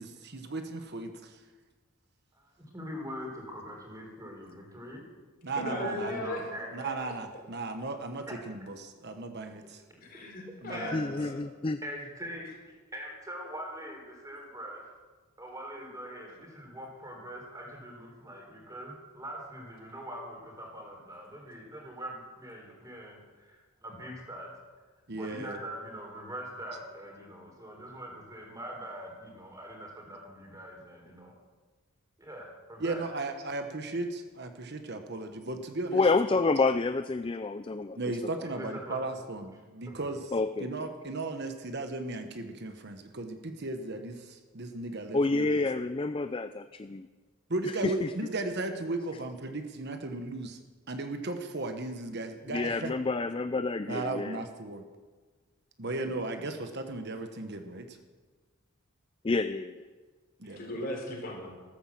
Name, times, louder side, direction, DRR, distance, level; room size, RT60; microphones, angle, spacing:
voice 1, 0.0-1.4 5.4-6.1 6.7-9.8 10.6-11.1 25.1-25.6 32.8-36.0 37.9-40.3 40.6-45.6 47.5-50.6 50.9-52.9 53.9-54.8 55.8-58.0 60.4-60.7, right 2 dB, 50° right, 7 dB, 1.2 m, -36 dB
voice 2, 2.3-5.0 5.8-7.1 10.7-11.0 11.8-12.5 12.9-14.9 15.4-24.5 25.1-31.3 32.2-33.0 38.6-39.0 39.9-40.1, equal, 15° right, 0 dB, 4.0 m, -43 dB
voice 3, 5.6-6.5 10.0-11.4 60.5-61.5, left 1 dB, 40° left, 0 dB, 4.2 m, -37 dB
voice 4, 10.9-11.8 35.9-38.0 40.3-40.7 45.1-47.1 47.8-48.1 52.5-54.4 59.2-59.8, left 3 dB, 25° left, 11 dB, 0.4 m, -28 dB
14.0 x 13.5 x 7.6 m, 1.4 s
head